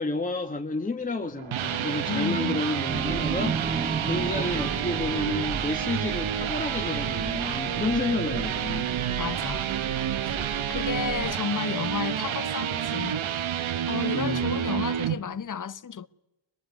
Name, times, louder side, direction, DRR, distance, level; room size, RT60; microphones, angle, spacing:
voice 1, 0.0-3.6 4.1-8.9 14.1-14.6, left 2 dB, 15° left, 1.3 m, -30 dB
sound 1, 1.2-15.2, right 9 dB, 70° right, 1.2 m, -29 dB
voice 2, 2.1-2.6 9.2-9.7 10.2-13.5 13.9-16.1, left 7 dB, 40° left, 0.8 m, -33 dB
sound 2, 2.9-11.3, right 4 dB, 20° right, 0.9 m, -35 dB
23.5 x 21.0 x 9.5 m
cardioid pair, 100°, 49 cm